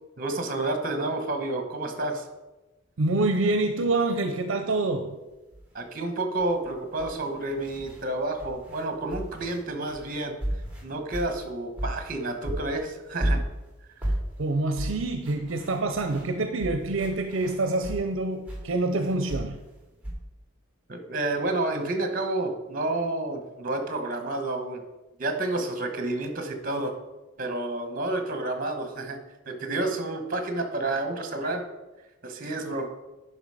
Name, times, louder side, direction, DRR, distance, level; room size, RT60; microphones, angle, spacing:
voice 1, 0.2-2.2 5.7-10.3 10.8-13.4 20.9-24.8 25.2-26.9 27.4-29.2 29.4-31.6 32.2-32.9, right 2 dB, 45° right, 1.3 m, -30 dB
voice 2, 3.0-5.2 14.4-19.6, right 2 dB, 70° right, 0.6 m, -26 dB
sound 1, 5.5-5.7 6.4-8.0 8.4-12.2 12.4-18.1 18.5-20.1, right 1 dB, 5° right, 2.2 m, -34 dB
10.0 x 5.6 x 4.9 m
head